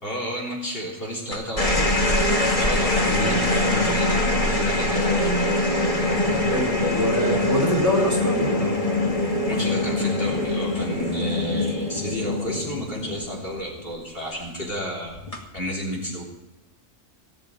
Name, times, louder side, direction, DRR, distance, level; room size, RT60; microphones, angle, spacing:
voice 1, 0.0-2.0 2.4-5.5 9.5-16.2, equal, 45° left, -3 dB, 3.6 m, -31 dB
sound 1, 1.3-13.9 15.1-15.6, left 1 dB, 25° left, 2.2 m, -23 dB
sound 2, 5.6-11.1, equal, 80° left, 3.2 m, -43 dB
voice 2, 6.3-8.7, equal, 10° right, -3 dB, 4.0 m, -24 dB
17.5 x 6.8 x 8.9 m, 1.0 s
omnidirectional pair, 1.4 m